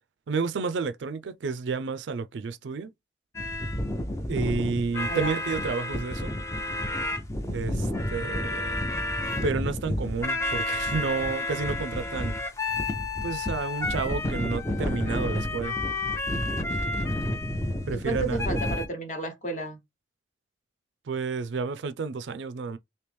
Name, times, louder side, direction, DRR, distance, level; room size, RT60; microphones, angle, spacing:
voice 1, 0.3-2.9 4.3-6.3 7.5-8.8 9.4-12.4 13.2-15.8 17.9-18.6 21.1-22.8, right 4 dB, 80° right, 0.4 m, -31 dB
sound 1, 3.3-18.9, left 1 dB, 15° left, 0.5 m, -30 dB
voice 2, 17.9-19.8, right 3 dB, 40° left, 1.1 m, -32 dB
3.0 x 2.8 x 3.4 m
head